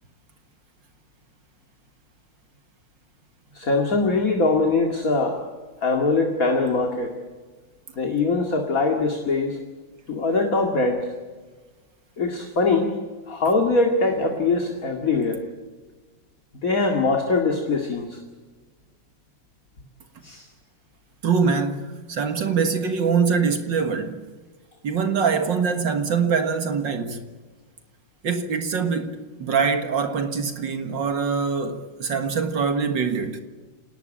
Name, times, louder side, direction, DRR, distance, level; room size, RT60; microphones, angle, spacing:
voice 1, 3.5-5.4 5.8-7.1 8.0-9.6 10.1-11.1 12.2-12.9 13.3-15.4 16.6-18.2 20.2-20.5, left 3 dB, 40° left, 2.6 m, -22 dB
voice 2, 21.2-24.3 24.8-27.3 28.2-33.4, right 5 dB, 65° right, 2.3 m, -24 dB
27.5 x 19.0 x 8.9 m
omnidirectional pair, 2.2 m